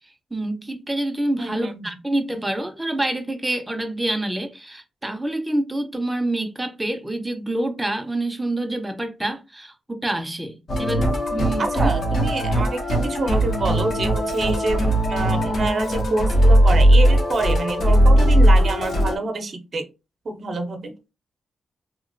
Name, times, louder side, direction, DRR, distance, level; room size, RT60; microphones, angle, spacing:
voice 1, 0.3-11.9, right 1 dB, 10° right, 0.6 m, -27 dB
voice 2, 1.4-1.9 11.6-19.9 20.2-20.9, right 2 dB, 55° right, 0.7 m, -27 dB
Musical instrument, 10.7-19.2, equal, 70° left, 1.0 m, -18 dB
2.9 x 2.5 x 2.5 m
cardioid pair, 75°, 0 cm